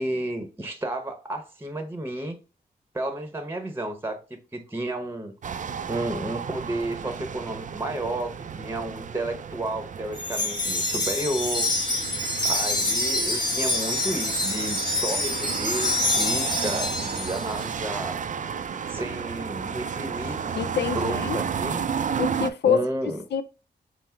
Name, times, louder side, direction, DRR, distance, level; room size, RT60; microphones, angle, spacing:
voice 1, 0.0-2.4 2.9-5.3 5.9-12.0 12.4-18.2 18.8-20.6 20.9-21.8 22.6-23.2, right 1 dB, 15° right, 0.8 m, -32 dB
sound 1, 5.4-22.5, right 7 dB, 45° right, 0.4 m, -33 dB
Wind chime, 10.1-17.6, left 2 dB, 25° left, 1.6 m, -26 dB
voice 2, 20.5-21.4 22.2-22.9 23.3-23.4, left 8 dB, 75° left, 0.5 m, -25 dB
5.8 x 2.0 x 4.4 m
cardioid pair, 90°, 18 cm